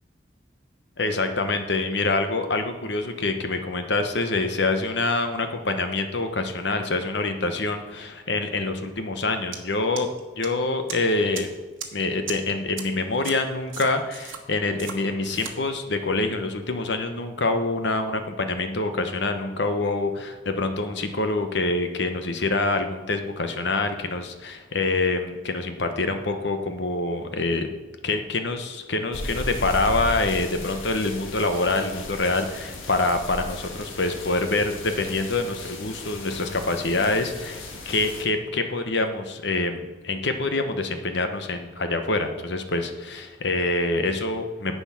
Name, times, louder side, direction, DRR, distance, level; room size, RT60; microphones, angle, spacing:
voice 1, 1.0-10.1 10.4-11.5 11.9-27.7 28.0-37.6 37.9-44.8, left 2 dB, 60° left, 7 dB, 1.0 m, -26 dB
sound 1, 9.5-9.6 10.0-10.5 10.9-11.0 11.3-11.4 11.8-11.9 12.3-12.4 12.8-12.9 13.2-13.3 13.7-14.4 14.8-14.9 15.2-15.5, right 8 dB, 80° right, 1.3 m, -35 dB
sound 2, 29.1-38.2, left 2 dB, 85° left, 1.5 m, -36 dB
10.5 x 7.0 x 5.8 m, 1.3 s
head